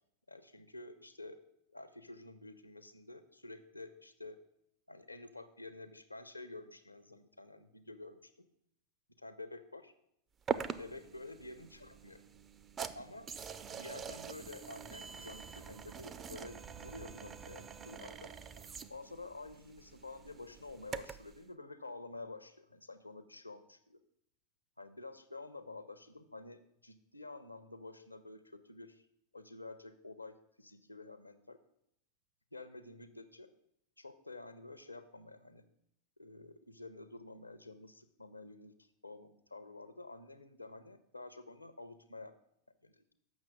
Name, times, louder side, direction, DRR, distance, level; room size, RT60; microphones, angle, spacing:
voice 1, 0.3-4.4 4.9-8.5 9.2-9.9 10.8-12.2 12.9-13.3 13.7-18.3 18.9-24.0 24.8-29.1 29.3-31.6 32.5-33.5 34.0-35.6 36.2-42.3 42.8-43.0, left 2 dB, 85° left, 12 dB, 0.6 m, -50 dB
sound 1, 10.5-21.3, right 6 dB, 25° right, 0.4 m, -44 dB
7.2 x 6.1 x 6.4 m, 0.76 s
figure-of-eight pair, 90°, 0 cm